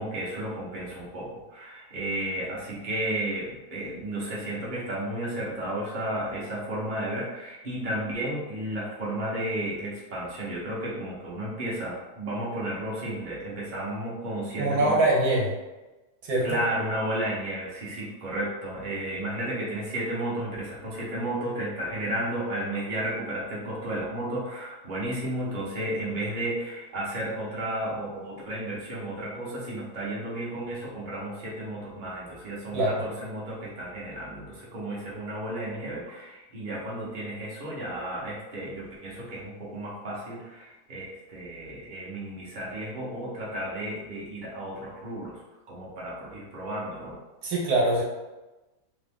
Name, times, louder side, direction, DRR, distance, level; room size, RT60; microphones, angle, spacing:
voice 1, 0.0-15.0 16.4-45.4 45.7-47.1, right 1 dB, 35° right, -6 dB, 0.9 m, -33 dB
voice 2, 14.6-15.5 16.2-16.6 32.7-33.0 47.4-48.0, right 2 dB, 70° right, -3 dB, 1.3 m, -23 dB
2.9 x 2.5 x 3.6 m, 1.1 s
omnidirectional pair, 1.8 m